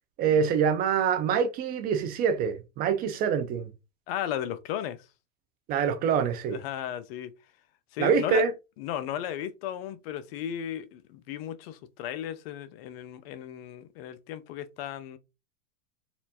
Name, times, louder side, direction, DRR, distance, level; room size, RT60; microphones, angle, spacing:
voice 1, 0.2-3.7 5.7-6.6 8.0-8.5, right 7 dB, 25° right, 0.4 m, -25 dB
voice 2, 4.1-5.1 6.5-7.3 7.9-8.4 8.8-15.2, left 10 dB, 55° left, 0.5 m, -35 dB
4.3 x 2.4 x 2.7 m
hypercardioid pair, 130°, 37 cm